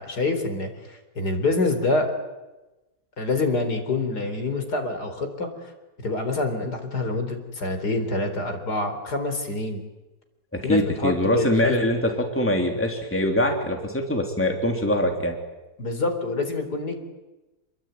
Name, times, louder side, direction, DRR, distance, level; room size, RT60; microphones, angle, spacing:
voice 1, 0.0-2.1 3.2-5.7 6.0-9.8 10.6-11.8 15.8-17.0, left 2 dB, 85° left, 6 dB, 4.5 m, -26 dB
voice 2, 10.5-15.4, left 1 dB, 10° left, 3 dB, 3.4 m, -23 dB
28.0 x 22.0 x 9.4 m, 1.1 s
omnidirectional pair, 1.7 m